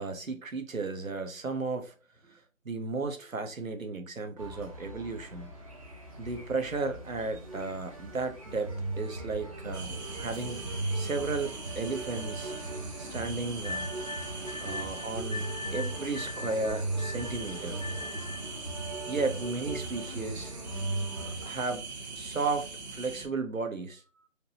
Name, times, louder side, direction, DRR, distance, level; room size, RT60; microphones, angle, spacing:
voice 1, 0.0-1.9 2.2-5.5 6.2-12.5 13.0-13.9 14.6-17.8 19.1-20.6 21.1-21.9 22.1-24.3, right 3 dB, 75° right, 1.3 m, -34 dB
sound 1, 4.4-21.4, right 2 dB, 25° right, 1.0 m, -38 dB
sound 2, 9.7-23.3, right 3 dB, 50° right, 1.8 m, -42 dB
sound 3, 13.6-18.5, left 4 dB, 30° left, 0.6 m, -41 dB
5.1 x 3.0 x 2.9 m
figure-of-eight pair, 165°, 40 cm